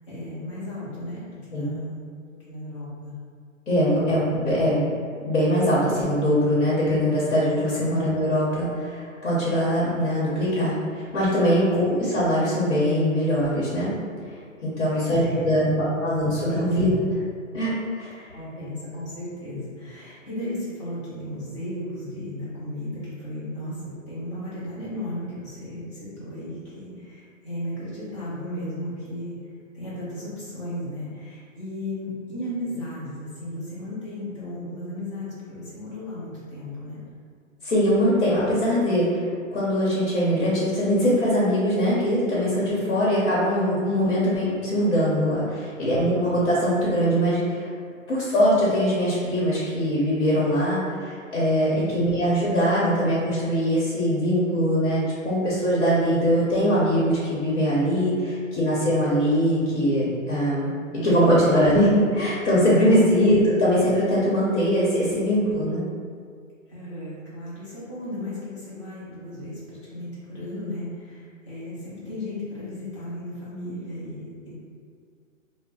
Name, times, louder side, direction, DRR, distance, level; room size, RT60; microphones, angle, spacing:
voice 1, 0.1-2.0 2.5-3.1 7.7-8.0 14.8-15.8 16.2-17.1 18.3-29.4 29.7-37.0 51.7-52.1 60.9-61.1 66.7-74.5, left 1 dB, 20° left, -10 dB, 0.7 m, -35 dB
voice 2, 3.7-4.9 5.2-13.9 14.6-16.9 17.5-18.3 37.6-47.7 48.1-65.8, equal, 60° left, -8 dB, 1.0 m, -22 dB
2.4 x 2.0 x 3.9 m, 2.2 s
hypercardioid pair, 170°, 40 cm